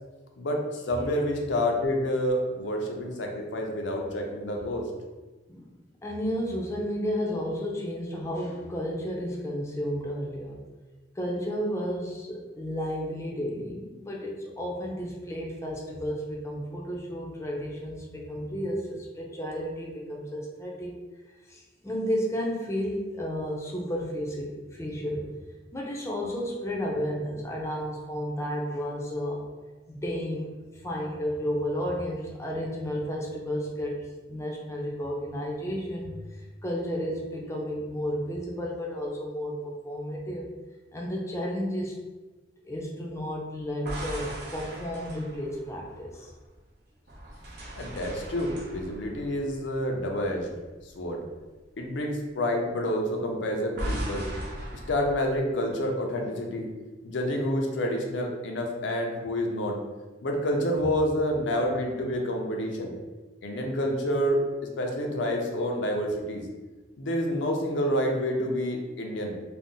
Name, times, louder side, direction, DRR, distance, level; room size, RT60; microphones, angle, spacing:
voice 1, 0.4-4.9 47.7-50.5 51.0-51.2 51.8-54.3 54.9-56.7 57.0-59.8 60.2-62.9 63.4-64.4 64.8-66.4 67.0-69.3, equal, 80° left, 1 dB, 0.5 m, -28 dB
voice 2, 6.0-10.6 11.2-20.9 21.5-25.3 25.7-29.4 29.9-40.5 40.9-42.0 42.6-46.3, equal, 15° left, -2 dB, 0.5 m, -32 dB
sound 1, 43.7-46.6 47.1-50.5 50.8-51.0 53.8-55.4, right 1 dB, 65° right, 0.7 m, -38 dB
2.5 x 2.0 x 3.7 m, 1.2 s
head